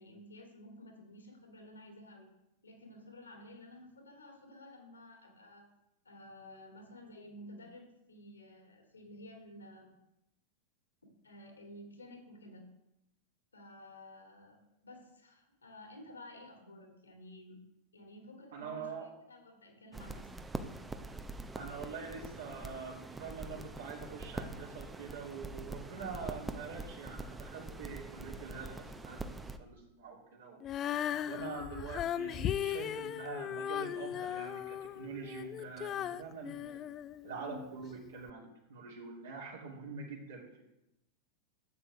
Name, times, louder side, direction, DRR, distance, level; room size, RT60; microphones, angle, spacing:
voice 1, 0.0-2.3 2.6-5.7 6.0-9.9 11.2-12.7 13.5-14.6 14.8-17.6 17.9-20.3, left 1 dB, 75° left, 1 dB, 2.5 m, -53 dB
voice 2, 18.5-19.1 21.5-30.6 31.2-36.9 37.2-40.6, right 5 dB, 60° right, -3 dB, 3.0 m, -45 dB
sound 1, 19.9-29.6, right 3 dB, 10° right, 0.7 m, -44 dB
Female singing, 30.6-37.7 38.3-38.4, left 10 dB, 30° left, 0.3 m, -37 dB
13.0 x 8.0 x 3.5 m, 0.88 s
figure-of-eight pair, 90°, 0 cm